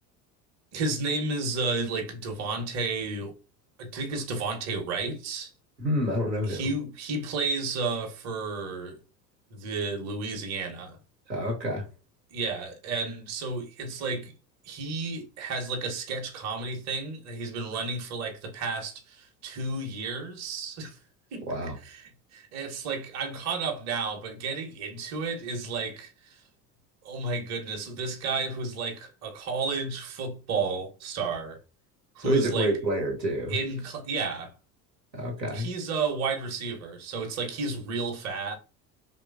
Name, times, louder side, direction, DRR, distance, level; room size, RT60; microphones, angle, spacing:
voice 1, 0.7-3.4 3.8-5.5 6.5-9.0 9.5-11.0 12.3-14.3 14.6-21.0 21.3-21.5 21.8-22.0 22.3-26.4 27.0-31.6 32.2-32.7 33.5-34.5 35.5-38.5, right 4 dB, 35° right, 0.7 m, -32 dB
voice 2, 5.8-6.6 11.3-11.8 21.5-21.8 32.2-33.6 35.1-35.7, right 1 dB, 90° right, 0.9 m, -27 dB
3.0 x 2.1 x 2.3 m
figure-of-eight pair, 65°, 49 cm